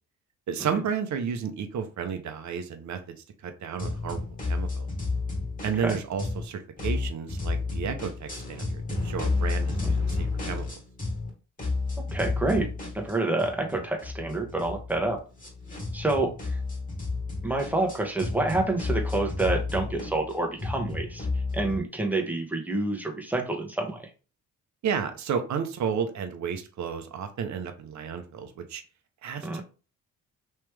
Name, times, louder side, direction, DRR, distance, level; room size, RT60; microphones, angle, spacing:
voice 1, 0.5-3.2 3.4-4.2 4.5-4.9 5.6-10.7 24.8-28.8 29.2-29.6, right 7 dB, 50° right, 6 dB, 0.8 m, -32 dB
sound 1, 3.8-6.4 6.8-11.3 11.6-21.8, left 3 dB, 25° left, 1.9 m, -31 dB
voice 2, 12.1-12.7 12.9-15.2 15.9-16.6 17.4-21.3 21.5-24.1 29.4-29.6, right 2 dB, 5° right, 1 dB, 1.2 m, -28 dB
3.2 x 3.0 x 3.4 m, 0.34 s
supercardioid pair, 65°, 36 cm